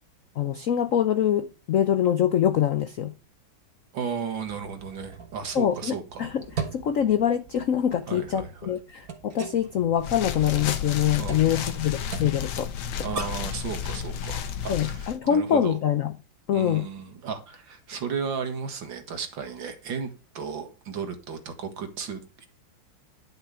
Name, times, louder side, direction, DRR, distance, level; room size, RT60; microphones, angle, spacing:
voice 1, 0.4-3.1 5.5-6.4 6.7-12.7 14.7-16.1 16.5-16.9, left 9 dB, 70° left, 0.7 m, -24 dB
voice 2, 3.9-6.3 8.1-8.7 11.2-11.8 13.0-15.8 16.5-22.5, right 6 dB, 70° right, 2.3 m, -34 dB
sound 1, 4.4-13.6, right 5 dB, 50° right, 1.8 m, -40 dB
sound 2, 10.0-15.2, left 8 dB, 90° left, 1.9 m, -32 dB
10.5 x 6.8 x 4.9 m
omnidirectional pair, 2.2 m